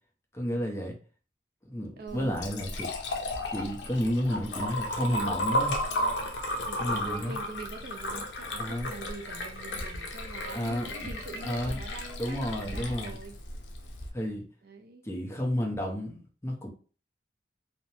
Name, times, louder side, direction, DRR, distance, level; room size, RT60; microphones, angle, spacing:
voice 1, 0.3-1.0 1.7-2.9 3.5-5.8 6.7-7.4 8.6-8.9 10.5-10.9 11.4-11.8 12.2-13.2 14.1-14.4 15.0-16.7, equal, 15° left, 0.6 m, -31 dB
voice 2, 2.0-2.4 6.7-13.4 14.6-15.1, right 4 dB, 60° right, 0.4 m, -44 dB
Liquid, 2.1-14.1, left 1 dB, 85° left, 0.6 m, -34 dB
3.0 x 2.0 x 2.7 m
head